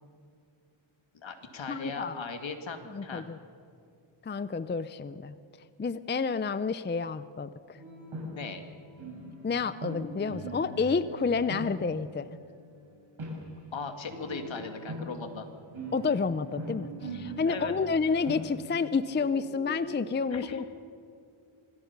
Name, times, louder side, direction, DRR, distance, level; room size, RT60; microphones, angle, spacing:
voice 1, 1.1-3.3 8.3-8.6 13.7-15.5 17.4-17.7 20.3-20.7, left 4 dB, 65° left, 6 dB, 2.2 m, -38 dB
voice 2, 1.7-2.2 2.9-3.4 4.2-5.3 5.8-7.8 9.4-12.3 15.9-20.7, left 5 dB, 25° left, 14 dB, 0.4 m, -30 dB
sound 1, 7.8-8.6 8.9-13.4 14.0-19.7, right 1 dB, 75° right, 7.1 m, -41 dB
26.0 x 19.5 x 5.9 m, 2.5 s
wide cardioid pair, 145°, 49 cm